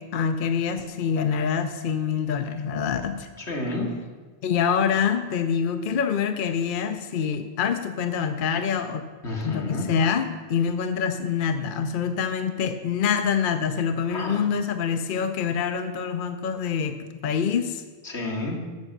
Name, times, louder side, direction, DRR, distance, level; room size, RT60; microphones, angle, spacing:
voice 1, 0.0-3.3 4.4-9.0 9.4-17.8, left 7 dB, 55° left, 8 dB, 0.8 m, -26 dB
voice 2, 3.4-3.9 9.2-9.9 14.1-14.4 18.0-18.6, left 2 dB, 85° left, 0 dB, 2.1 m, -30 dB
10.5 x 7.2 x 6.6 m, 1.4 s
omnidirectional pair, 1.1 m